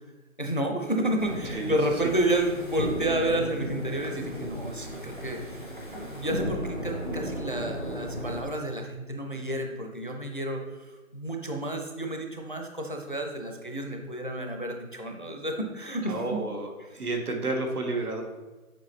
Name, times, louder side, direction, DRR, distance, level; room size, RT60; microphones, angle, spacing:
voice 1, 0.4-5.6 5.9-16.4, right 1 dB, 40° left, 3 dB, 0.5 m, -30 dB
sound 1, 1.2-8.4, equal, 35° right, 0.6 m, -35 dB
voice 2, 16.1-18.2, right 2 dB, 90° right, 2 dB, 1.5 m, -31 dB
7.5 x 4.3 x 3.1 m, 1.2 s
hypercardioid pair, 180°, 44 cm